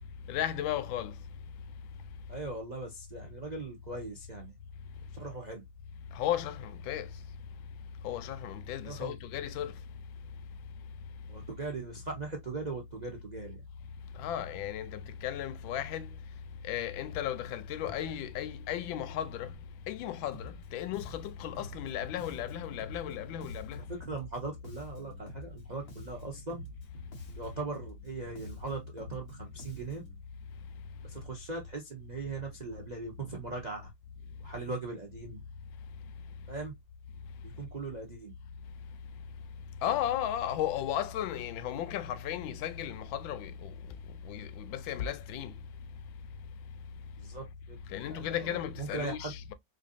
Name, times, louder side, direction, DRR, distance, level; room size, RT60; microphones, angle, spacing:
voice 1, 0.3-1.1 6.1-7.1 8.0-9.7 14.2-16.1 16.6-19.5 19.9-23.8 39.8-43.7 44.2-45.5 47.9-49.5, left 10 dB, 85° left, 1.3 m, -35 dB
voice 2, 2.3-4.5 5.1-5.6 8.8-9.2 11.3-13.6 23.8-26.6 27.4-30.0 31.0-33.9 34.4-35.4 36.5-36.7 37.4-38.3 47.2-47.8 48.1-49.3, right 3 dB, 85° right, 0.3 m, -40 dB
Bass guitar, 20.3-20.7 20.9-25.6 25.9-30.2, left 1 dB, 40° left, 1.0 m, -48 dB
4.4 x 2.5 x 2.5 m
omnidirectional pair, 2.1 m